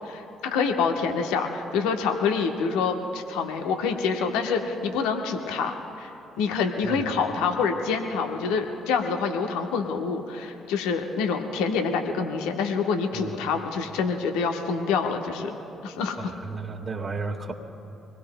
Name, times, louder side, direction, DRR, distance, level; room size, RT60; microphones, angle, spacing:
voice 1, 0.0-6.1 6.4-15.5 15.8-16.2, left 5 dB, 75° left, 4 dB, 1.0 m, -26 dB
voice 2, 16.2-17.5, right 4 dB, 40° right, 1 dB, 1.6 m, -33 dB
25.0 x 20.0 x 2.2 m, 2.9 s
hypercardioid pair, 45°, 0 cm